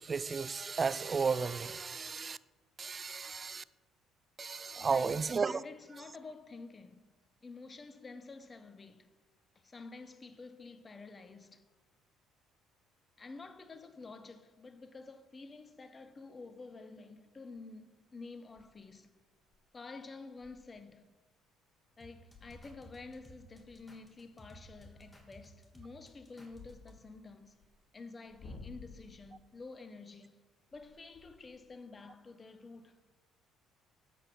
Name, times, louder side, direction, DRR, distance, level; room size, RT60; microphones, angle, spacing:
voice 1, 0.0-2.4 2.8-3.6 4.4-5.6, right 5 dB, 35° right, 0.5 m, -33 dB
voice 2, 4.7-5.2 5.5-7.1 7.4-9.1 9.5-11.7 13.2-19.1 19.7-21.1 22.0-27.5 27.9-30.4 30.7-33.0, left 3 dB, 30° left, 1.2 m, -50 dB
sound 1, 18.5-18.8 19.3-19.6 19.9-20.0 20.3-20.7 21.2-21.3 21.8-22.0 22.3-25.2 25.9-27.7 28.2-29.3 30.7-31.7, left 3 dB, 55° left, 3.1 m, -55 dB
sound 2, 22.0-26.9, equal, 10° left, 2.8 m, -57 dB
12.5 x 8.4 x 5.5 m
hypercardioid pair, 65°, 0 cm